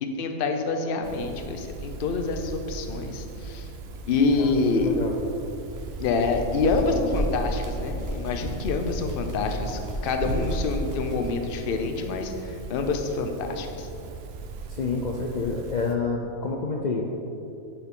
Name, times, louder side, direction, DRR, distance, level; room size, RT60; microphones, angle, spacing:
voice 1, 0.0-3.7 4.1-4.9 6.0-13.9, left 4 dB, 55° left, 5 dB, 0.7 m, -27 dB
sound 1, 1.0-16.0, right 3 dB, 60° right, 0.8 m, -38 dB
voice 2, 4.3-5.2 14.7-17.0, left 4 dB, 75° left, 1 dB, 0.4 m, -28 dB
sound 2, 5.1-11.3, equal, 20° right, 0.6 m, -34 dB
7.5 x 7.0 x 3.7 m, 2.8 s
omnidirectional pair, 1.4 m